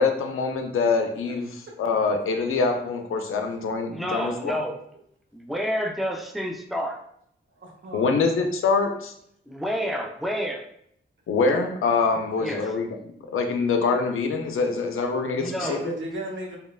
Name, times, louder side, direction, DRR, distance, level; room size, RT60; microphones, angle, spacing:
voice 1, 0.0-4.5 7.9-9.1 11.3-12.9 13.3-16.0, left 4 dB, 80° left, 5 dB, 0.4 m, -24 dB
voice 2, 3.9-4.8 5.3-7.0 9.5-10.6 12.4-12.7 15.3-15.9, equal, ahead, 2 dB, 0.3 m, -29 dB
voice 3, 7.6-8.2 12.4-12.5 15.6-16.6, equal, 65° right, 0 dB, 0.7 m, -36 dB
2.9 x 2.1 x 2.2 m, 0.70 s
cardioid pair, 70°, 21 cm